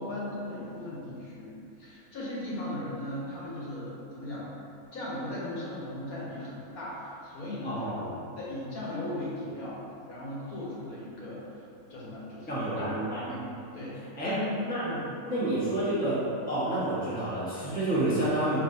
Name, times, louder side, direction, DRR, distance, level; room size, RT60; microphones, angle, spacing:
voice 1, 0.0-4.5 4.9-9.8 10.1-13.5 13.7-14.5 14.8-15.0, left 1 dB, 75° left, -8 dB, 1.5 m, -37 dB
voice 2, 7.6-7.9 12.5-13.2 14.2-14.4 14.7-14.8 15.3-16.2 16.5-18.6, right 1 dB, 10° left, -9 dB, 0.7 m, -29 dB
5.3 x 3.2 x 2.7 m, 2.6 s
omnidirectional pair, 1.5 m